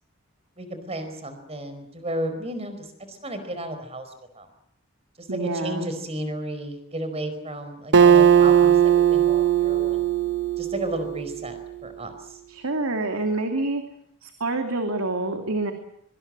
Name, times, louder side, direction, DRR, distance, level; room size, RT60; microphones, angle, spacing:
voice 1, 0.6-4.5 5.2-10.1 10.6-12.4, right 1 dB, 30° right, 9 dB, 4.7 m, -33 dB
voice 2, 5.3-5.9 12.5-13.8 14.2-15.7, right 2 dB, 85° right, 5 dB, 2.8 m, -27 dB
Acoustic guitar, 7.9-11.5, right 9 dB, 55° right, 1.0 m, -18 dB
24.5 x 24.5 x 7.6 m, 0.70 s
head